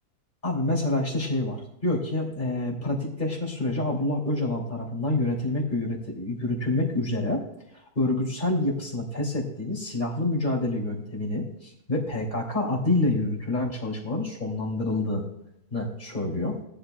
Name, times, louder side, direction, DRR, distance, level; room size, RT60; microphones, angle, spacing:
voice 1, 0.4-7.4 8.0-15.2 15.7-16.5, left 2 dB, 30° left, -2 dB, 2.9 m, -27 dB
18.0 x 11.0 x 2.3 m, 0.78 s
omnidirectional pair, 1.7 m